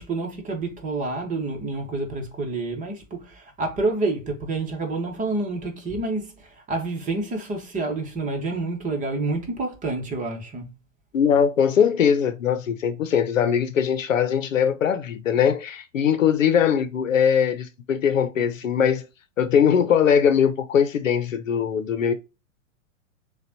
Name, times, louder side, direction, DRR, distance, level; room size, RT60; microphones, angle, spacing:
voice 1, 0.0-10.7, right 3 dB, 20° right, 1.4 m, -28 dB
voice 2, 11.1-19.0 19.4-22.1, left 8 dB, 75° left, 0.9 m, -21 dB
6.6 x 2.5 x 2.8 m
hypercardioid pair, 110°, 39 cm